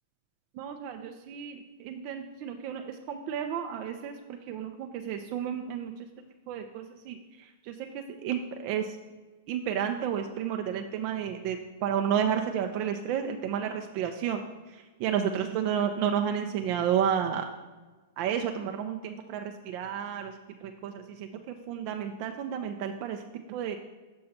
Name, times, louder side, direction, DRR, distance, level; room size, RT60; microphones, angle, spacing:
voice 1, 0.5-6.1 6.5-9.0 9.5-14.4 14.7-17.5 18.2-23.2 23.5-23.8, right 8 dB, 50° right, 5 dB, 0.5 m, -32 dB
6.5 x 5.6 x 4.2 m, 1.3 s
hypercardioid pair, 115°, 0 cm